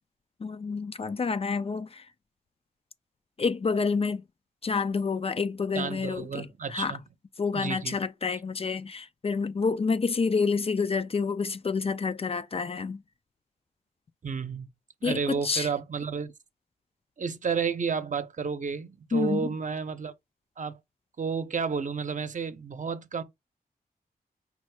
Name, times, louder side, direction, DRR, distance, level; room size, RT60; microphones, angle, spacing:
voice 1, 0.4-2.0 3.4-4.2 4.6-7.0 7.4-13.0 15.0-15.7 19.1-19.4, left 5 dB, 40° left, 0.4 m, -28 dB
voice 2, 5.7-7.0 7.5-8.0 8.3-8.4 14.2-14.7 15.0-16.3 17.2-20.1 20.6-20.8 21.2-23.2, right 5 dB, 55° right, 0.7 m, -31 dB
5.2 x 2.1 x 4.7 m
wide cardioid pair, 80°, 16 cm